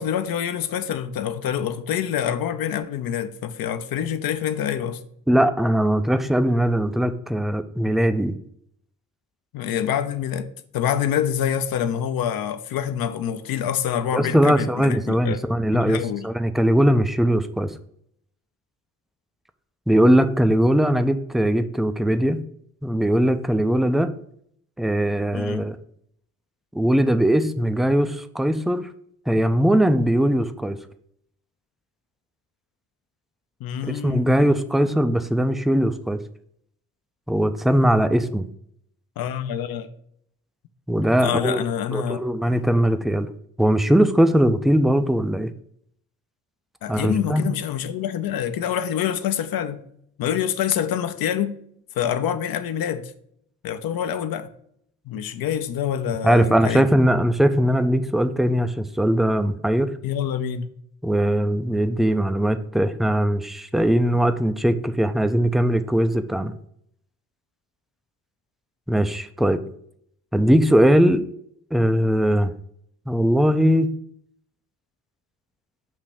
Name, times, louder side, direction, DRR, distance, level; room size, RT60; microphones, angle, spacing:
voice 1, 0.0-5.0 9.5-15.4 15.7-16.3 25.3-25.7 33.6-34.4 39.2-39.9 41.2-42.2 46.8-49.8 50.2-51.6 52.0-53.1 53.6-54.5 55.1-56.8 60.0-60.7, left 9 dB, 60° left, 0.7 m, -26 dB
voice 2, 5.3-8.3 14.1-17.7 19.9-22.4 22.8-24.1 24.8-25.8 26.7-28.9 29.3-30.8 34.0-36.2 37.3-38.5 40.9-41.6 41.9-43.3 43.6-45.5 46.9-47.4 56.2-59.9 61.0-66.5 68.9-69.6 70.3-71.3 71.7-72.5 73.1-73.9, equal, ahead, 0.4 m, -20 dB
6.4 x 3.0 x 5.8 m
hypercardioid pair, 45°, 41 cm